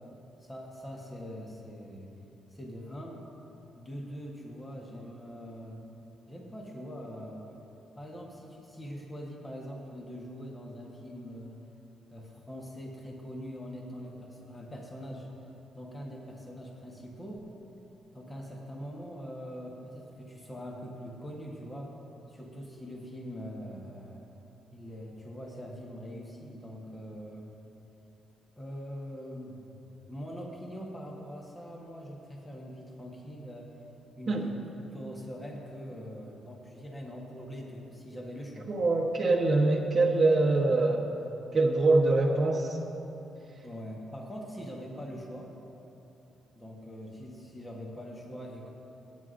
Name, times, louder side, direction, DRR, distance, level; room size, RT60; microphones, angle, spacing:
voice 1, 0.4-2.1 2.5-3.2 3.7-5.9 6.3-7.6 7.9-11.6 12.1-15.3 15.7-17.5 18.1-21.9 22.3-24.2 24.7-27.5 28.6-33.7 34.2-34.6 34.9-38.7 43.6-45.5 46.5-48.7, equal, 15° left, -1 dB, 1.1 m, -43 dB
voice 2, 38.7-41.1 41.5-42.8, right 2 dB, 30° right, -4 dB, 1.1 m, -24 dB
17.0 x 9.5 x 2.5 m, 2.9 s
cardioid pair, 135°, 0 cm